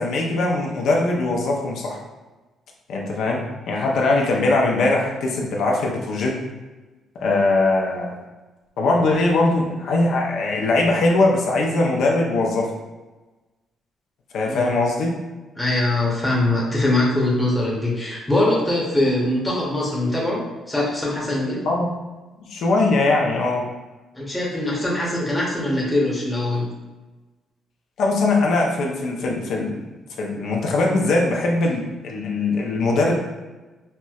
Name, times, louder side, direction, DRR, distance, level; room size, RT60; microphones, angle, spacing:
voice 1, 0.0-2.0 2.9-6.4 7.2-8.1 8.8-12.7 14.3-15.2 21.6-21.9 22.5-23.7 28.0-29.9 30.2-33.1, left 2 dB, 75° left, -1 dB, 0.5 m, -21 dB
voice 2, 15.6-21.6 24.1-26.7, left 1 dB, 10° left, -5 dB, 0.8 m, -22 dB
4.2 x 2.1 x 2.3 m, 1.2 s
cardioid pair, 90°, 0 cm